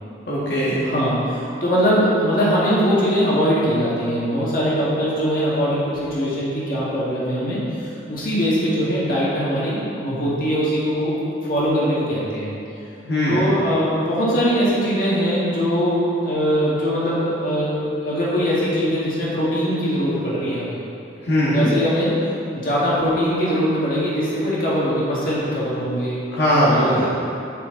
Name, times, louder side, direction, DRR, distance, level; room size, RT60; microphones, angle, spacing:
voice 1, 0.3-0.9 13.1-13.4 21.2-21.7 26.3-27.1, equal, 75° left, -8 dB, 1.7 m, -19 dB
voice 2, 0.8-11.2 11.5-12.5 13.3-20.8 21.5-22.1 22.5-26.2 26.6-27.1, equal, 50° left, -8 dB, 1.9 m, -21 dB
9.4 x 5.9 x 3.9 m, 2.7 s
head